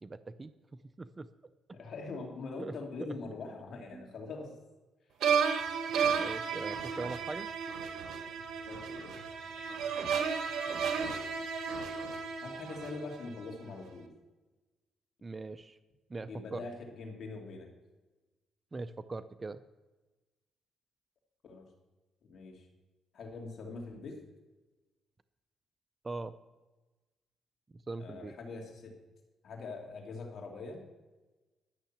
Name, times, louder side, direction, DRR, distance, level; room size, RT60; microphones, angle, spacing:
voice 1, 0.0-1.3 1.7-1.8 2.6-2.8 3.0-3.2 3.9-4.1 6.1-7.5 15.2-15.8 16.1-16.6 18.7-19.6 26.0-26.3 27.7-28.3, right 3 dB, 25° right, 12 dB, 0.5 m, -41 dB
voice 2, 1.7-4.5 8.7-9.2 12.4-14.1 16.3-17.7 21.4-21.7 22.3-22.7 23.1-24.2 28.0-28.9 29.4-30.8, left 3 dB, 60° left, 1 dB, 2.7 m, -43 dB
sound 1, 5.2-13.4, right 6 dB, 70° right, 1.3 m, -33 dB
12.0 x 6.4 x 7.3 m, 1.2 s
cardioid pair, 90°, 0 cm